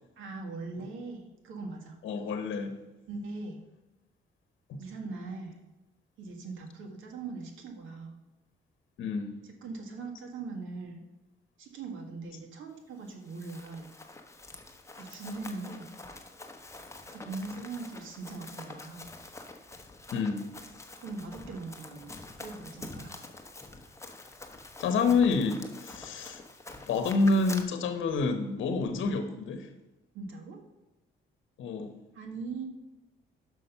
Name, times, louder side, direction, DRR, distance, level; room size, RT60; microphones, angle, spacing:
voice 1, 0.2-2.0 3.1-3.6 4.8-5.6 6.2-8.2 9.4-11.0 11.6-13.9 14.9-15.9 17.1-19.1 21.0-22.1 22.4-23.1 30.1-30.6 32.1-32.6, right 3 dB, 80° right, 3 dB, 1.6 m, -40 dB
voice 2, 2.0-2.7 4.7-4.8 9.0-9.4 20.1-20.5 24.8-26.4 26.9-29.7 31.6-31.9, left 4 dB, 75° left, 8 dB, 0.9 m, -28 dB
Run, 13.1-27.6, left 2 dB, 15° left, 1.0 m, -46 dB
6.1 x 5.8 x 5.5 m, 1.1 s
cardioid pair, 90°, 20 cm